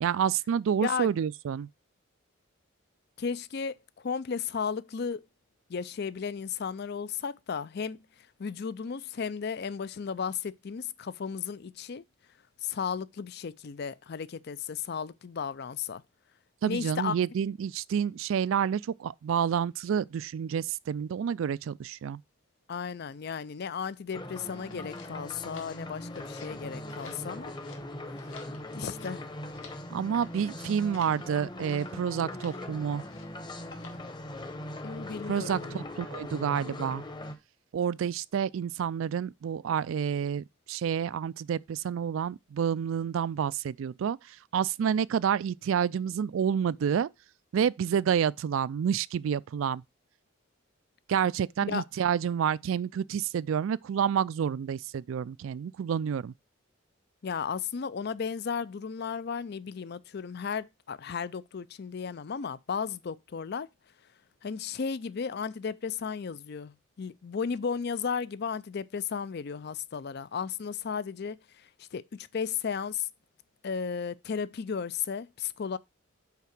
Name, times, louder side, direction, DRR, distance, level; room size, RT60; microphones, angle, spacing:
voice 1, 0.0-1.7 16.6-22.2 29.9-33.0 35.3-37.0 37.7-47.1 47.5-49.8 51.1-56.3, right 8 dB, 70° right, 0.3 m, -29 dB
voice 2, 3.2-5.2 5.7-8.0 8.4-12.0 12.6-16.0 16.7-17.1 22.7-27.5 28.7-29.2 34.8-35.8 51.7-51.8 57.2-63.7 64.4-73.1 73.6-75.8, left 6 dB, 50° left, 0.4 m, -34 dB
sound 1, 24.1-37.4, left 1 dB, 20° left, 1.0 m, -40 dB
sound 2, 24.7-26.6 26.8-27.8 28.1-29.9 30.2-30.6 30.9-31.2 31.6-31.9 32.3-32.6 33.0-33.4 33.7-34.1, left 5 dB, 70° left, 1.9 m, -52 dB
5.8 x 4.8 x 5.9 m
head